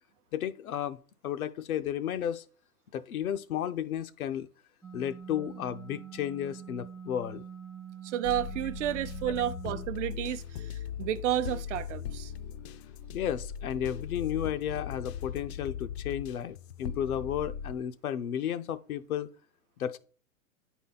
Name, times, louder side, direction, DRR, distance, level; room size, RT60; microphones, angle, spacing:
voice 1, 0.3-2.5 2.9-4.5 4.9-7.4 13.1-19.3 19.8-20.0, left 10 dB, 85° left, 0.7 m, -33 dB
sound 1, 4.8-9.9, right 8 dB, ahead, 0.5 m, -45 dB
voice 2, 8.0-12.3, right 11 dB, 60° right, 0.6 m, -31 dB
sound 2, 8.2-17.8, left 8 dB, 50° left, 0.4 m, -39 dB
9.4 x 4.1 x 4.0 m
hypercardioid pair, 130°, 42 cm